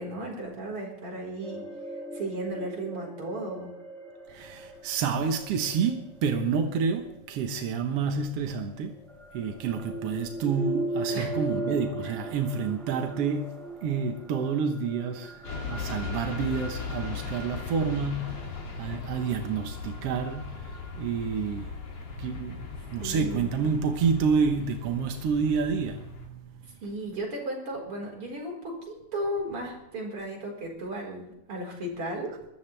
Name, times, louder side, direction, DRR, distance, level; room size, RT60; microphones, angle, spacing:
voice 1, 0.0-1.6 2.1-3.7 11.1-11.7 12.0-12.1 23.0-23.5 26.8-32.3, right 1 dB, 40° right, 5.2 m, -35 dB
sound 1, 1.4-7.4 8.6-21.0, right 2 dB, ahead, 2.5 m, -39 dB
voice 2, 4.3-9.0 9.3-21.8 22.1-26.5, right 5 dB, 65° right, 1.6 m, -29 dB
sound 2, 15.4-26.3, left 5 dB, 45° left, 3.6 m, -38 dB
22.5 x 14.0 x 3.4 m
omnidirectional pair, 4.0 m